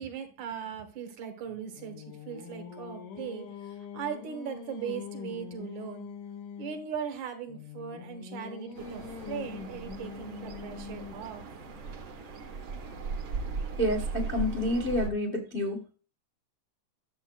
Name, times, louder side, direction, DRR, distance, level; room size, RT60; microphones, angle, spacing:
voice 1, 0.0-6.1 6.6-11.5, right 8 dB, 70° right, 6 dB, 2.6 m, -39 dB
Singing, 1.4-6.9 7.5-11.4, left 7 dB, 80° left, 2.8 m, -43 dB
sound 1, 8.7-15.1, right 4 dB, 55° right, 1.6 m, -38 dB
voice 2, 13.8-15.8, left 1 dB, 35° left, 1 dB, 0.9 m, -29 dB
11.5 x 7.3 x 2.3 m, 0.37 s
omnidirectional pair, 3.6 m